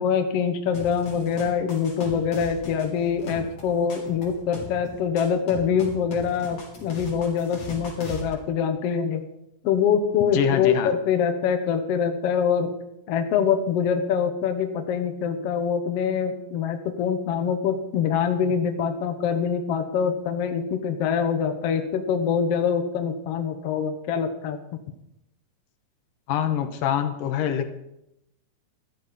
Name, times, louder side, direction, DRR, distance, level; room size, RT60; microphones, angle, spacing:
voice 1, 0.0-9.2 9.6-12.7 13.1-24.6, left 7 dB, 60° left, 7 dB, 1.6 m, -24 dB
sound 1, 0.7-8.3, left 2 dB, 45° left, 4.2 m, -39 dB
voice 2, 10.3-10.9 26.3-27.7, left 9 dB, 75° left, 8 dB, 2.6 m, -25 dB
13.5 x 13.0 x 5.3 m, 0.85 s
omnidirectional pair, 4.1 m